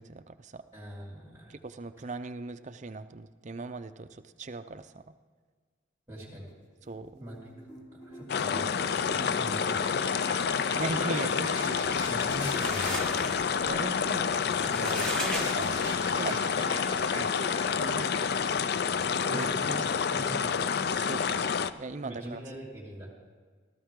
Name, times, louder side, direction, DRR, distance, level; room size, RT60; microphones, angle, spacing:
voice 1, 0.0-0.6 1.5-5.0 6.9-7.2 10.8-12.0 13.6-15.8 16.1-18.4 19.3-19.9 20.9-22.4, right 3 dB, 35° right, 11 dB, 0.5 m, -39 dB
voice 2, 0.7-1.5 6.1-6.5 7.2-7.5 7.9-10.0 12.1-13.0 15.5-15.7 19.2-20.6 22.0-23.1, right 1 dB, 15° right, -7 dB, 2.5 m, -42 dB
sound 1, 6.8-13.0 14.9-21.1, left 1 dB, 25° left, 3.1 m, -43 dB
sound 2, 8.3-21.7, left 6 dB, 50° left, 0.4 m, -28 dB
sound 3, 12.2-16.2, right 1 dB, 5° left, 1.3 m, -38 dB
16.0 x 13.5 x 3.7 m, 1.6 s
head